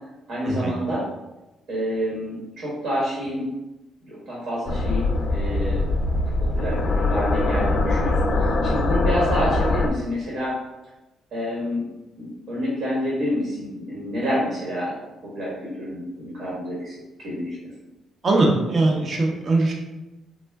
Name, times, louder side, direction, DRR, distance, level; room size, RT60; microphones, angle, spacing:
voice 1, 0.3-1.0 1.7-3.5 4.0-5.8 6.4-10.5 11.3-11.9 12.2-14.9 15.2-17.6, equal, 75° right, -6 dB, 1.2 m, -28 dB
sound 1, 4.7-9.9, left 2 dB, 50° left, 0.4 m, -22 dB
voice 2, 18.2-19.7, right 2 dB, 45° right, 0 dB, 0.7 m, -21 dB
3.5 x 2.1 x 3.4 m, 1.0 s
cardioid pair, 90°, 0 cm